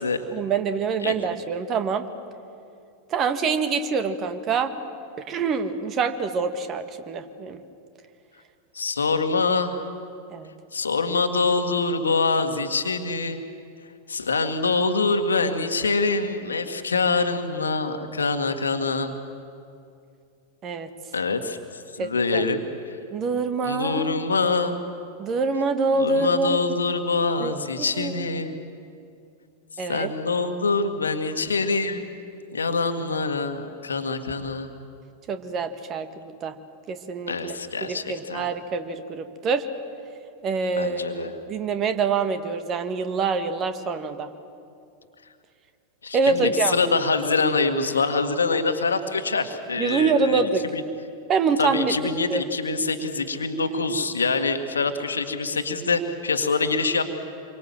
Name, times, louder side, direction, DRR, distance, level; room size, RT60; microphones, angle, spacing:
voice 1, 0.3-2.1 3.1-4.7 5.2-7.6 10.3-10.5 20.6-20.9 22.0-22.4 23.1-24.2 25.2-26.7 27.4-27.5 27.8-28.4 29.8-30.1 35.3-36.6 36.9-37.5 37.8-39.7 40.4-44.3 46.1-46.8 49.8-50.6 51.3-51.9 52.3-52.4, right 4 dB, 30° right, 9 dB, 1.7 m, -25 dB
voice 2, 8.7-9.8 10.7-13.4 14.1-19.2 21.1-22.9 23.6-24.8 26.0-28.5 29.9-32.0 32.5-34.7 37.3-38.4 40.8-41.3 46.0-50.4 50.7-50.8 51.6-57.0, left 4 dB, 75° left, 7 dB, 1.8 m, -25 dB
27.0 x 24.0 x 7.7 m, 2.5 s
figure-of-eight pair, 90°, 0 cm